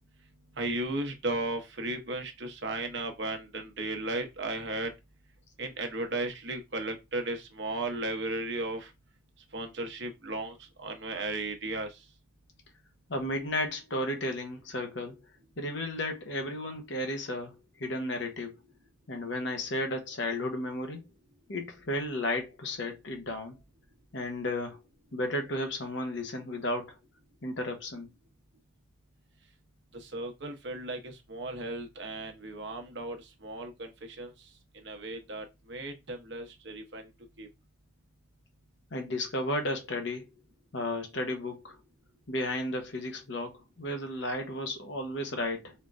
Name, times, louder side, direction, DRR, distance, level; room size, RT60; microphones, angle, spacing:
voice 1, 0.6-4.9 5.6-8.9 9.5-12.0 29.9-34.3 34.7-37.1 37.4-37.5, right 2 dB, 60° right, 1.0 m, -35 dB
voice 2, 13.1-15.2 15.6-17.5 17.8-18.6 19.1-21.1 21.5-23.6 24.1-24.8 25.1-27.0 27.4-28.1 38.9-40.2 40.7-41.8 42.3-45.7, left 1 dB, 60° left, 1.0 m, -33 dB
4.4 x 3.5 x 2.6 m
head